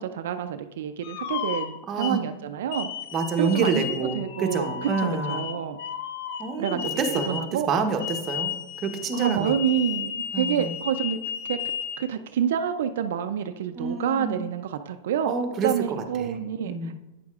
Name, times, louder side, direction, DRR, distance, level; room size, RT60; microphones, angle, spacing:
voice 1, 0.0-2.9 3.4-5.8 6.6-6.8 7.1-7.7 9.1-11.2 11.4-11.6 12.0-15.3 15.6-16.9, right 9 dB, 75° right, 8 dB, 0.4 m, -28 dB
sound 1, 1.0-2.2 2.7-7.5 8.0-12.0, left 9 dB, 60° left, 0.6 m, -34 dB
voice 2, 1.9-2.2 3.1-5.4 6.4-8.5 8.8-9.5 10.3-10.7 13.7-14.4 15.3-16.4 16.6-16.9, right 4 dB, 25° right, 4 dB, 0.8 m, -28 dB
8.9 x 6.3 x 2.4 m, 1.1 s
supercardioid pair, 155°, 0 cm